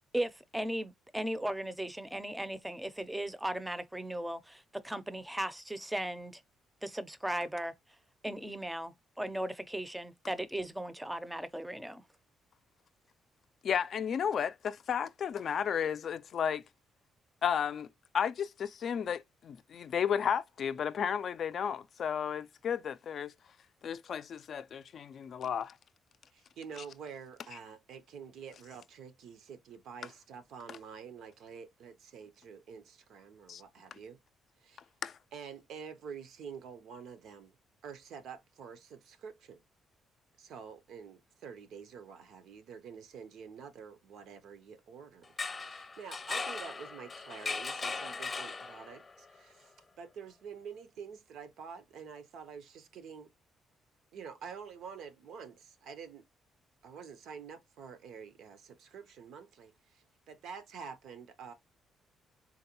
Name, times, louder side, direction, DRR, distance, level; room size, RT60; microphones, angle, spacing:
voice 1, 0.0-6.4 6.8-7.7 8.2-12.0, right 1 dB, 10° right, 0.5 m, -37 dB
voice 2, 13.6-16.6 17.4-17.9 18.1-23.3 23.8-25.7 30.7-30.8 33.5-33.6 35.0-35.2, left 8 dB, 60° left, 0.3 m, -33 dB
voice 3, 26.3-34.2 34.6-34.8 35.3-37.5 37.8-39.6 40.4-53.3 54.1-56.2 56.8-61.5, right 6 dB, 80° right, 0.6 m, -48 dB
sound 1, 45.2-49.1, left 4 dB, 30° left, 0.7 m, -38 dB
3.8 x 2.2 x 2.8 m
cardioid pair, 90°, 0 cm